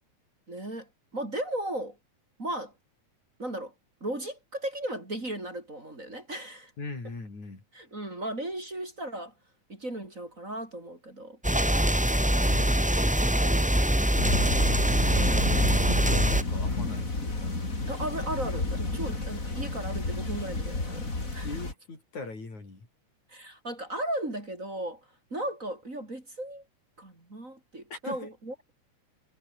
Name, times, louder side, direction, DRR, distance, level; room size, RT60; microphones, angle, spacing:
voice 1, 0.5-2.0 2.4-2.7 3.4-3.7 4.0-6.7 7.7-9.3 9.7-11.4 13.4-13.9 15.1-15.6 17.9-21.5 23.3-26.6 27.0-28.5, right 1 dB, 25° right, 4.8 m, -36 dB
voice 2, 6.8-7.6 12.4-12.9 15.0-17.3 21.4-22.9 27.9-28.2, left 3 dB, 75° left, 9.1 m, -40 dB
sound 1, 11.4-16.4, right 1 dB, 5° right, 0.9 m, -23 dB
sound 2, 14.2-21.7, left 2 dB, 25° left, 4.7 m, -31 dB
omnidirectional pair, 3.3 m